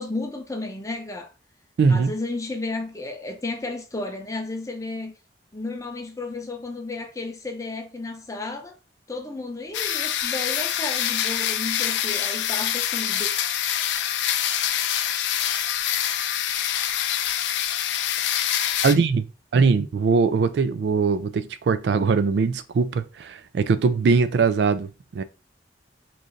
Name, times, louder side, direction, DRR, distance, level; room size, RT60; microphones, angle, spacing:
voice 1, 0.0-1.3 1.9-5.1 5.5-8.8 9.1-13.3, left 2 dB, 20° left, 0.6 m, -33 dB
voice 2, 1.8-2.1 18.8-19.3 19.5-25.2, right 5 dB, 70° right, 0.3 m, -21 dB
sound 1, 9.7-18.9, left 10 dB, 85° left, 0.4 m, -25 dB
3.1 x 2.5 x 3.7 m
head